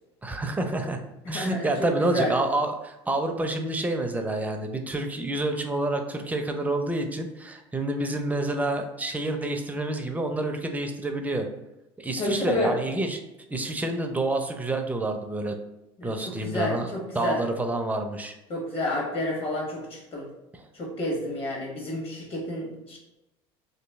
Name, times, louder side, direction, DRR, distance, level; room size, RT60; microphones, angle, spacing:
voice 1, 0.2-1.0 1.3-11.5 12.0-13.2 13.5-15.5 16.0-16.9 17.1-18.3 20.5-20.6, right 2 dB, 10° right, 5 dB, 0.5 m, -28 dB
voice 2, 1.2-1.7 2.0-2.3 12.2-12.7 16.0-17.4 18.5-20.3 20.7-23.0, left 1 dB, 45° left, -2 dB, 1.5 m, -30 dB
3.0 x 2.6 x 3.5 m, 0.96 s
supercardioid pair, 90°, 14 cm